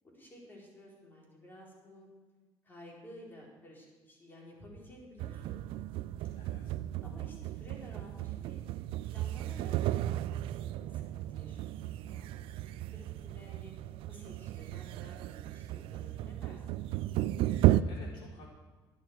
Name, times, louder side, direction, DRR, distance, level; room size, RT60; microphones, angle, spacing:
voice 1, 0.0-2.1 2.6-5.6 7.0-8.6 9.1-10.2 10.6-13.7 14.1-16.7, equal, 25° left, -3 dB, 4.1 m, -53 dB
sound 1, 5.2-17.8, right 15 dB, 80° right, 0.4 m, -34 dB
voice 2, 6.4-6.7 17.4-18.5, left 3 dB, 70° left, -4 dB, 4.4 m, -54 dB
11.0 x 11.0 x 4.7 m, 1.3 s
cardioid pair, 100°, 9 cm